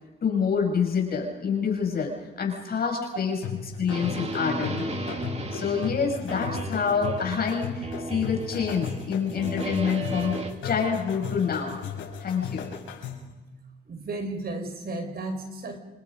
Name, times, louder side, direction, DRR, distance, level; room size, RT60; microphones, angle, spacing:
voice 1, 0.2-3.4 3.8-4.9 5.5-11.8 12.2-12.7, left 6 dB, 50° left, 1 dB, 7.5 m, -27 dB
sound 1, 3.4-13.4, left 7 dB, 80° left, 6.2 m, -36 dB
sound 2, 3.9-7.6 7.8-9.1 9.4-10.5, right 2 dB, 30° right, 2.8 m, -35 dB
voice 2, 13.9-15.8, right 2 dB, 50° right, 6 dB, 5.5 m, -34 dB
28.5 x 26.0 x 5.3 m, 1.1 s
cardioid pair, 90°, 20 cm